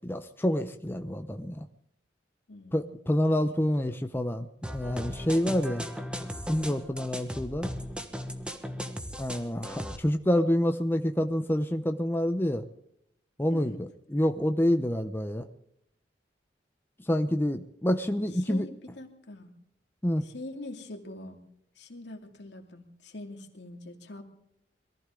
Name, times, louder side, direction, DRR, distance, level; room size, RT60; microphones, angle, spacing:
voice 1, 0.0-1.6 2.7-4.5 4.7-5.8 6.5-7.7 9.2-12.6 13.4-13.7 14.1-15.4 17.1-18.7 20.0-20.2, equal, 10° left, 7 dB, 0.7 m, -27 dB
voice 2, 2.5-3.0 3.3-3.7 13.5-13.8 18.3-19.5 20.2-21.4 21.8-24.2, left 2 dB, 70° left, 3 dB, 2.6 m, -44 dB
sound 1, 4.6-10.0, equal, 5° right, 1.3 m, -37 dB
22.5 x 15.0 x 3.8 m, 0.74 s
head